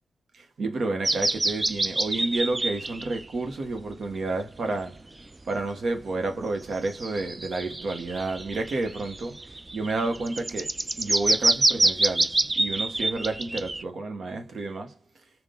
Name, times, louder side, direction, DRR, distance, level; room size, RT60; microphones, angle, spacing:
voice 1, 0.3-5.0 5.5-14.9, right 2 dB, 65° right, 1.0 m, -30 dB
sound 1, 1.0-3.3 3.8-3.9 4.8-4.9 6.9-13.8, right 2 dB, 25° right, 0.3 m, -26 dB
3.8 x 2.4 x 3.7 m
cardioid pair, 75°, 0 cm